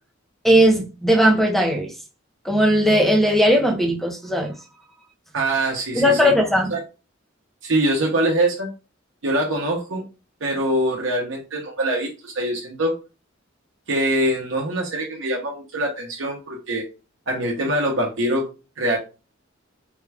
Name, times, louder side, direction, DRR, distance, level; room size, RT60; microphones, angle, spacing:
voice 1, 0.4-1.9 2.4-4.5 5.9-6.7, equal, ahead, 0.8 m, -18 dB
voice 2, 5.3-6.3 6.7-6.8 7.6-8.7 9.2-10.0 10.4-13.0 13.9-16.8 17.3-18.5 18.8-19.0, right 1 dB, 65° right, 0.9 m, -23 dB
3.5 x 2.4 x 3.3 m
head